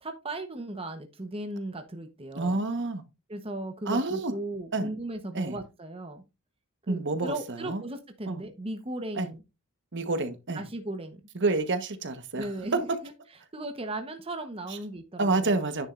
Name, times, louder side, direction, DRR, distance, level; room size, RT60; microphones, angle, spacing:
voice 1, 0.0-2.6 3.3-6.2 6.8-9.4 10.5-11.2 12.4-12.9 13.5-15.6, right 1 dB, 25° right, 1.0 m, -37 dB
voice 2, 2.3-3.0 3.8-4.3 4.7-4.9 5.3-5.6 6.9-7.8 8.3-8.4 9.1-9.3 9.9-10.6 11.3-12.8 14.7-14.8 15.2-15.9, right 3 dB, 55° right, 1.2 m, -28 dB
10.0 x 7.1 x 2.5 m
head